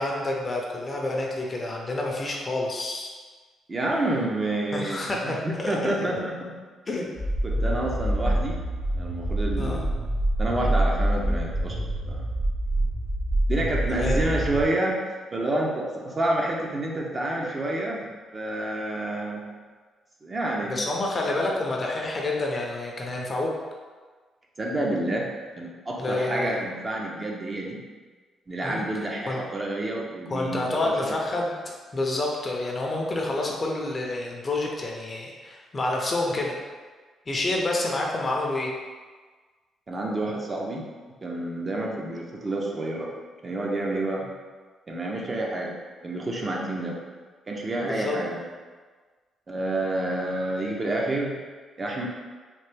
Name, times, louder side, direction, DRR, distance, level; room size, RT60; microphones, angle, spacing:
voice 1, 0.0-3.1 4.7-6.1 6.9-7.1 7.6-7.8 9.6-9.9 13.9-14.2 20.7-23.5 26.0-26.7 28.6-28.9 29.3-29.4 30.3-31.5 31.9-36.6 37.3-38.7 47.9-48.2, left 2 dB, 30° left, -1 dB, 0.6 m, -28 dB
voice 2, 3.7-6.5 7.4-8.6 8.9-9.9 10.4-12.2 13.5-15.0 15.3-18.1 18.3-19.5 20.2-20.7 24.6-25.3 25.6-27.8 28.5-31.1 39.9-40.8 41.2-43.1 43.4-44.3 44.9-45.8 46.0-47.0 47.5-48.4 49.5-51.3 51.8-52.1, right 1 dB, 30° right, -2 dB, 0.6 m, -29 dB
sound 1, 7.1-14.7, right 1 dB, 55° right, 0.8 m, -26 dB
3.3 x 2.4 x 3.3 m, 1.4 s
cardioid pair, 90°, 0 cm